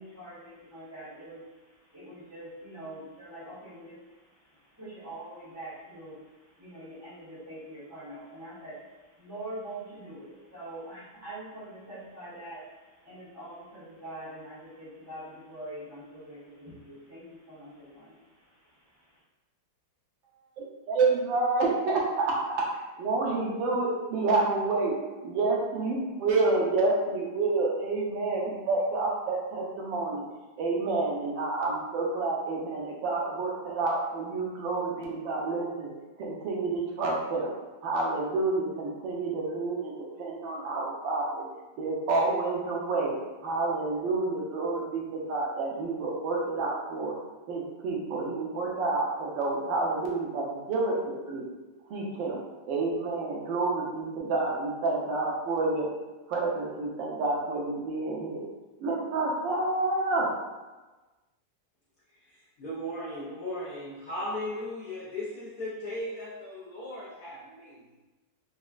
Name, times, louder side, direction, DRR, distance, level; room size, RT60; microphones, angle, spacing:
voice 1, 0.0-19.2, right 1 dB, 15° right, -10 dB, 0.5 m, -44 dB
voice 2, 20.6-22.6 23.0-24.9 25.2-30.2 30.6-35.9 36.2-37.5 37.8-41.4 41.8-43.1 43.4-47.1 47.5-51.4 51.9-52.4 52.6-55.9 56.3-58.4 58.8-60.3, right 3 dB, 80° right, -3 dB, 1.4 m, -29 dB
voice 3, 62.1-67.8, left 1 dB, 70° left, -7 dB, 0.9 m, -37 dB
4.1 x 2.2 x 2.3 m, 1.2 s
omnidirectional pair, 2.1 m